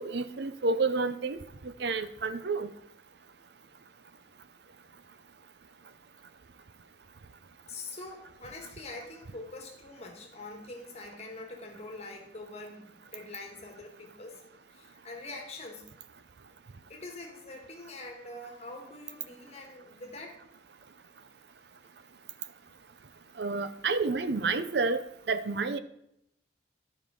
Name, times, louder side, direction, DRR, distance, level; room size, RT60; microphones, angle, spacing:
voice 1, 0.0-1.4 1.6-2.7 23.4-25.8, right 3 dB, 60° right, 12 dB, 0.6 m, -30 dB
voice 2, 7.7-14.4 14.7-15.8 16.9-20.4, left 2 dB, 35° left, 2 dB, 1.5 m, -44 dB
11.0 x 5.4 x 4.8 m, 0.77 s
head